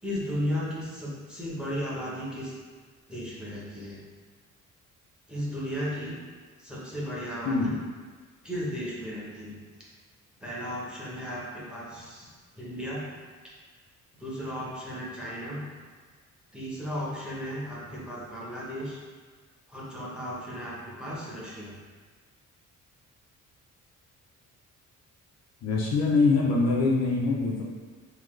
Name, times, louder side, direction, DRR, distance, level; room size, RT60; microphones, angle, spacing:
voice 1, 0.0-2.5 3.1-4.0 5.3-6.2 6.6-7.7 8.4-9.6 10.4-13.1 13.4-13.5 14.2-15.6 16.5-19.0 19.7-21.8, equal, 5° right, -7 dB, 0.9 m, -35 dB
voice 2, 25.6-27.6, left 3 dB, 55° left, -3 dB, 0.6 m, -23 dB
3.8 x 2.8 x 3.1 m, 1.5 s
cardioid pair, 135°, 31 cm